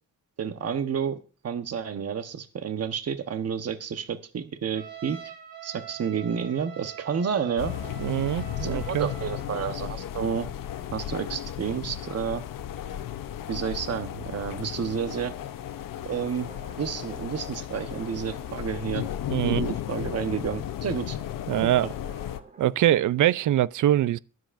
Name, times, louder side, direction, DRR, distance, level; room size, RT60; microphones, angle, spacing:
voice 1, 0.4-1.2 1.4-5.2 5.6-7.7 8.6-10.5 10.9-12.4 13.5-15.3 16.0-16.5 16.8-19.1 19.4-21.2 21.8-21.9, right 7 dB, 50° right, 1.0 m, -30 dB
Trumpet, 4.7-9.5, right 9 dB, 90° right, 2.2 m, -44 dB
sound 1, 7.6-22.4, left 11 dB, 80° left, 0.8 m, -35 dB
voice 2, 8.0-9.1 19.3-19.6 21.5-21.9 22.6-24.2, right 12 dB, 65° right, 0.5 m, -23 dB
sound 2, 16.3-17.3 17.7-23.0, right 2 dB, 25° right, 2.3 m, -53 dB
23.0 x 7.8 x 2.5 m
cardioid pair, 90°, 33 cm